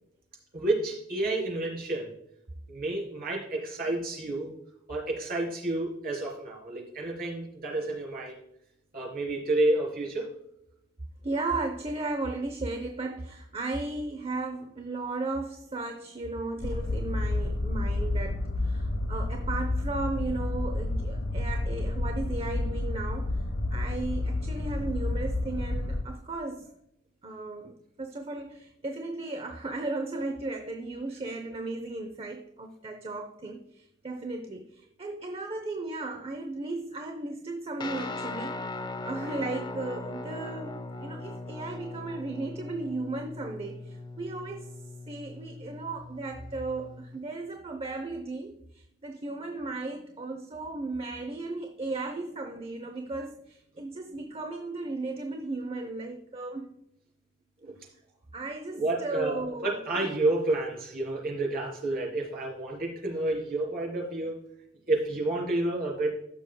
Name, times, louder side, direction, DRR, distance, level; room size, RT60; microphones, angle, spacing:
voice 1, 0.5-2.1 2.7-4.5 4.9-8.4 8.9-10.3 57.6-57.8 58.7-64.4 64.9-66.2, right 2 dB, 50° right, -2 dB, 3.7 m, -30 dB
voice 2, 11.2-26.7 27.2-38.6 39.0-44.7 45.1-56.7 58.3-60.2, right 2 dB, 30° right, 5 dB, 0.7 m, -35 dB
sound 1, 16.6-26.0, left 2 dB, 80° left, 0.9 m, -30 dB
Guitar, 37.8-47.2, left 2 dB, 25° left, 0.5 m, -39 dB
14.5 x 6.3 x 2.3 m, 0.80 s
head